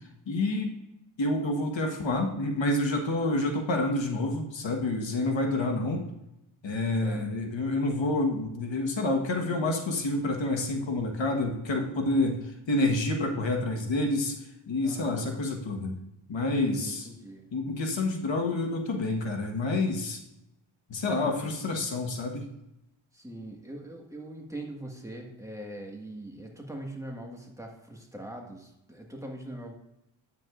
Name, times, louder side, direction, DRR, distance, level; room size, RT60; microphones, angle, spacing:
voice 1, 0.3-0.8 1.2-6.0 6.6-14.3 14.7-15.9 16.3-16.8 17.5-20.2 20.9-22.5, left 2 dB, 70° left, 3 dB, 1.4 m, -28 dB
voice 2, 14.8-15.3 16.5-17.5 23.1-29.7, right 1 dB, 5° right, 0 dB, 1.7 m, -41 dB
9.1 x 7.5 x 2.5 m, 0.85 s
cardioid pair, 80°, 47 cm